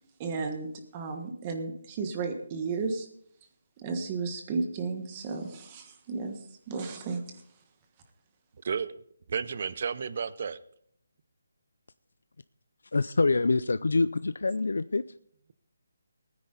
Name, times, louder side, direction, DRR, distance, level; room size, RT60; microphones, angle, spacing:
voice 1, 0.2-3.1 3.8-6.3 6.7-7.4, right 4 dB, 20° right, 5 dB, 1.4 m, -33 dB
voice 2, 8.6-9.0 9.3-10.6, right 6 dB, 40° right, 16 dB, 0.6 m, -32 dB
voice 3, 12.9-15.0, left 3 dB, 80° left, 14 dB, 0.4 m, -25 dB
19.0 x 9.6 x 4.0 m, 0.67 s
hypercardioid pair, 170°, 0 cm